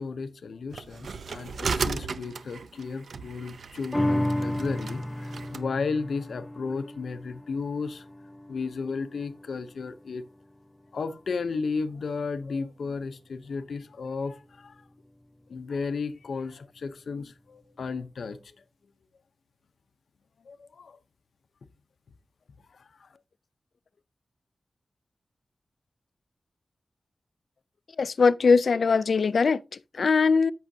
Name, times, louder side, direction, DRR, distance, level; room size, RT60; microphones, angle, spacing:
voice 1, 0.0-8.0 8.5-10.2 10.9-14.8 15.5-18.5 20.4-21.0 22.7-23.1, left 4 dB, 85° left, 0.7 m, -34 dB
sound 1, 0.7-5.6, right 5 dB, 85° right, 0.6 m, -35 dB
sound 2, 3.9-10.6 11.1-11.2, left 1 dB, 10° left, 0.6 m, -33 dB
voice 2, 28.0-30.5, left 5 dB, 70° left, 0.3 m, -21 dB
13.5 x 6.2 x 2.7 m
wide cardioid pair, 115°, 0 cm